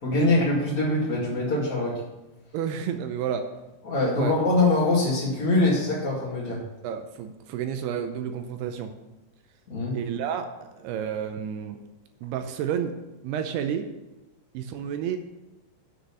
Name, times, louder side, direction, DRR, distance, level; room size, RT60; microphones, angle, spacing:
voice 1, 0.0-2.0 3.8-6.6 9.7-9.9, left 2 dB, 35° left, -6 dB, 1.3 m, -23 dB
voice 2, 2.5-3.5 4.2-4.3 6.8-8.9 9.9-11.8 12.2-12.9 13.2-13.9 14.5-15.2, right 8 dB, 80° right, 7 dB, 2.4 m, -30 dB
7.8 x 6.4 x 6.9 m, 1.0 s
omnidirectional pair, 5.1 m